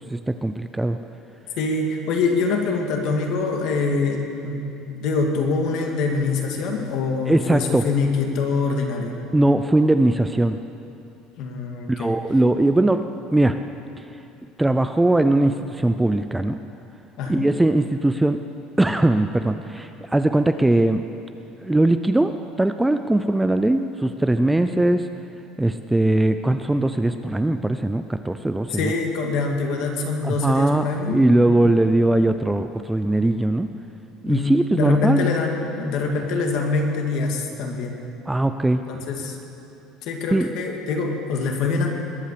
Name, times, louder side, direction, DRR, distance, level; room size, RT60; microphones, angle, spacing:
voice 1, 0.1-1.0 7.3-7.8 9.3-10.6 11.9-13.1 13.3-13.6 14.6-16.6 17.3-18.4 18.8-21.0 21.6-25.1 25.6-28.9 30.2-33.7 34.2-35.3 38.3-38.8 40.3-40.5, right 1 dB, 5° right, 9 dB, 0.3 m, -20 dB
voice 2, 1.6-9.1 11.4-12.2 17.2-17.5 24.7-24.8 28.7-31.2 31.6-31.7 34.2-38.0 38.9-39.4 40.0-41.9, left 4 dB, 55° left, 2 dB, 1.9 m, -24 dB
21.0 x 8.6 x 6.7 m, 2.8 s
cardioid pair, 170°, 0 cm